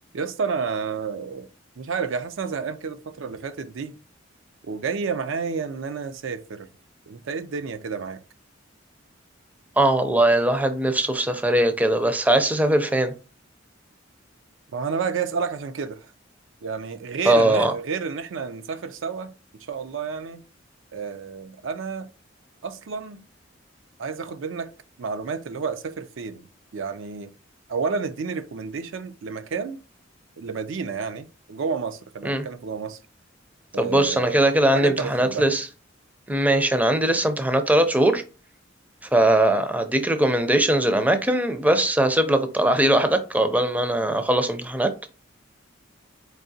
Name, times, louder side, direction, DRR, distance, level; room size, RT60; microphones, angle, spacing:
voice 1, 0.1-1.5 1.8-3.9 4.6-6.7 7.1-8.2 14.7-16.1 16.6-20.4 20.9-22.1 22.6-23.2 24.0-24.7 25.0-26.5 26.7-27.3 27.7-29.8 30.4-33.0 33.7-35.5, right 5 dB, 85° right, 0.5 m, -30 dB
voice 2, 9.8-13.1 17.3-17.7 32.2-32.4 33.8-35.7 36.3-38.2 39.1-44.9, right 1 dB, 10° right, 0.4 m, -20 dB
4.7 x 2.8 x 2.7 m
head